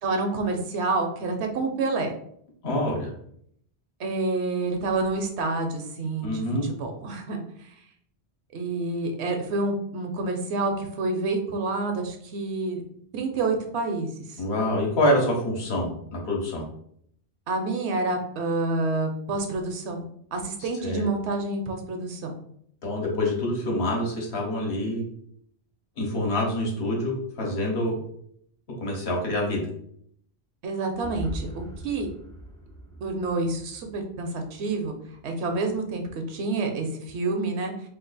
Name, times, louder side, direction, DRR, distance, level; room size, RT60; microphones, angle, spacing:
voice 1, 0.0-2.1 4.0-7.4 8.5-12.8 13.1-14.1 17.5-22.4 30.6-32.1 33.0-34.9 35.2-36.0 36.3-37.7, right 3 dB, 75° right, 4 dB, 0.9 m, -28 dB
voice 2, 2.6-3.1 6.2-6.6 14.4-15.9 16.3-16.6 20.6-21.1 22.8-25.0 26.0-28.0 28.8-29.6, left 1 dB, 70° left, -2 dB, 1.2 m, -26 dB
sound 1, 31.0-34.9, right 1 dB, 5° left, 0.5 m, -40 dB
2.8 x 2.4 x 3.9 m, 0.68 s
omnidirectional pair, 1.1 m